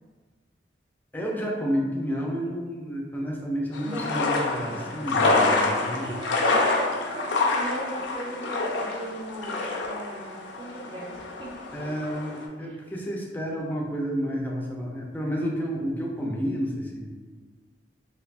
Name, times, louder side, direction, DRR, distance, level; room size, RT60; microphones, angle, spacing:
voice 1, 1.1-6.1 11.7-17.1, equal, 10° left, -2 dB, 0.4 m, -30 dB
sound 1, 3.7-12.5, left 3 dB, 80° left, 0.5 m, -27 dB
voice 2, 3.8-4.1 5.0-11.7 12.6-12.8, right 1 dB, 30° right, -4 dB, 0.6 m, -38 dB
3.3 x 2.6 x 2.4 m, 1.4 s
head